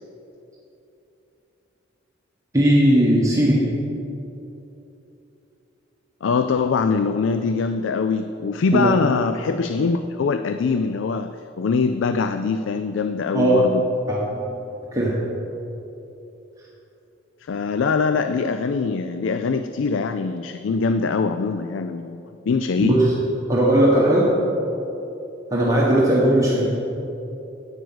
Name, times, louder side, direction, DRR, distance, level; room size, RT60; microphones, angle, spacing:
voice 1, 2.5-3.7 8.7-8.9 13.3-13.7 14.1-14.6 14.9-15.2 22.8-23.2 23.5-24.3 25.5-26.6, right 1 dB, 15° right, -6 dB, 1.4 m, -18 dB
voice 2, 6.2-13.8 17.4-23.0, left 4 dB, 85° left, 9 dB, 0.4 m, -23 dB
9.4 x 9.3 x 6.2 m, 3.0 s
head